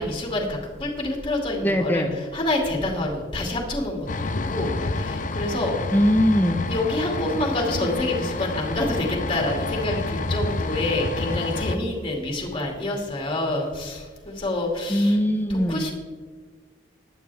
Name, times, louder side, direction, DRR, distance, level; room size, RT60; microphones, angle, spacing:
voice 1, 0.0-2.0 2.3-5.8 6.7-15.2 15.5-15.9, left 1 dB, 25° left, 0 dB, 2.6 m, -27 dB
voice 2, 1.6-2.1 5.9-6.6 14.9-15.9, equal, 10° left, 6 dB, 1.1 m, -21 dB
sound 1, 4.1-11.8, left 2 dB, 45° left, 0.7 m, -29 dB
15.0 x 11.0 x 3.5 m, 1.5 s
head